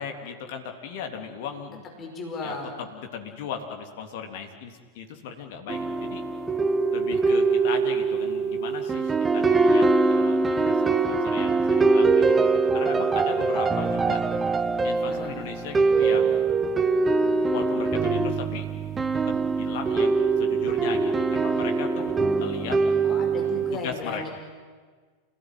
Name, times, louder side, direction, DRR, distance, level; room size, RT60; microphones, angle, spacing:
voice 1, 0.0-1.8 2.4-6.2 6.9-14.2 14.8-16.4 17.5-18.7 19.3-22.8 23.7-24.3, left 7 dB, 50° left, 4 dB, 3.3 m, -37 dB
voice 2, 2.0-2.7 15.1-15.3 23.0-24.3, left 3 dB, 25° left, 1 dB, 5.3 m, -35 dB
sound 1, 5.7-23.8, right 4 dB, 15° right, 1.1 m, -23 dB
27.5 x 18.0 x 9.7 m, 1.5 s
figure-of-eight pair, 90°, 0 cm